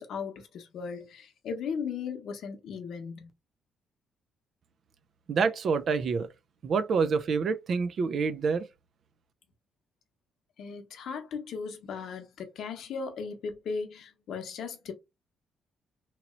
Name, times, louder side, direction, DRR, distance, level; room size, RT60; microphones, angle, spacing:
voice 1, 0.0-3.3 10.6-14.9, left 5 dB, 70° left, 0.7 m, -37 dB
voice 2, 5.3-6.3 6.6-8.7, right 5 dB, 55° right, 0.4 m, -27 dB
3.0 x 2.8 x 2.4 m
cardioid pair, 90°, 0 cm